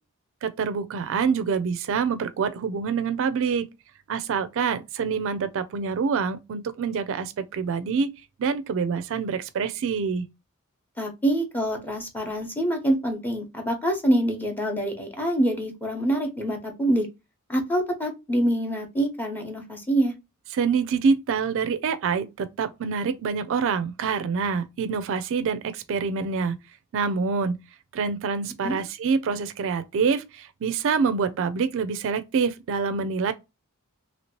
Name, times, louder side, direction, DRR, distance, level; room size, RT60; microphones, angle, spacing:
voice 1, 0.4-3.7 4.1-8.1 8.4-10.2 20.5-26.6 26.9-27.6 27.9-33.3, right 5 dB, 65° right, 0.4 m, -26 dB
voice 2, 11.0-17.1 17.5-20.1 28.6-28.8, right 1 dB, 10° left, 0.9 m, -25 dB
2.9 x 2.8 x 2.9 m
head